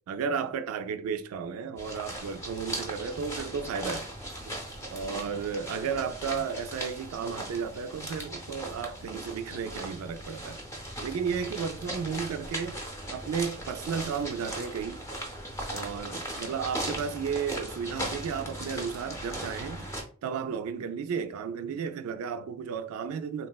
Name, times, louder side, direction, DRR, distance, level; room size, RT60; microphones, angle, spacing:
voice 1, 0.1-4.1 4.4-4.6 4.9-10.6 11.0-12.8 13.1-15.0 15.7-19.9 20.2-23.5, right 6 dB, 75° right, 0.3 m, -33 dB
sound 1, 1.8-20.0, right 1 dB, 15° left, 0.6 m, -38 dB
3.4 x 2.0 x 2.2 m
head